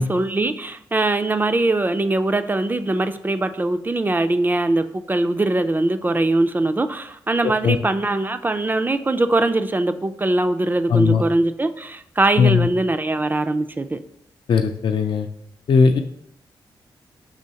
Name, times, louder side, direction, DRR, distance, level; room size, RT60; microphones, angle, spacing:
voice 1, 0.0-14.0, right 2 dB, 20° right, 9 dB, 0.3 m, -21 dB
voice 2, 7.4-7.8 10.9-11.2 12.4-12.6 14.5-15.3 15.7-16.0, left 5 dB, 60° left, 6 dB, 0.4 m, -18 dB
6.3 x 3.0 x 2.8 m, 0.72 s
cardioid pair, 55°, 9 cm